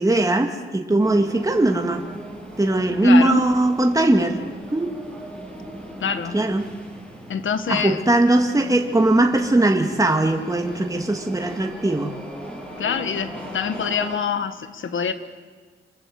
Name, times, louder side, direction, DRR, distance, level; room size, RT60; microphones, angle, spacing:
voice 1, 0.0-2.1 2.6-4.4 4.7-5.0 6.3-6.7 7.7-12.2, right 1 dB, 15° right, 4 dB, 2.2 m, -19 dB
sound 1, 1.0-14.2, right 1 dB, 5° left, 7.3 m, -38 dB
voice 2, 3.0-3.4 6.0-6.4 7.3-8.0 12.8-15.1, left 7 dB, 75° left, 10 dB, 1.7 m, -25 dB
27.5 x 21.0 x 7.9 m, 1.5 s
cardioid pair, 65°, 21 cm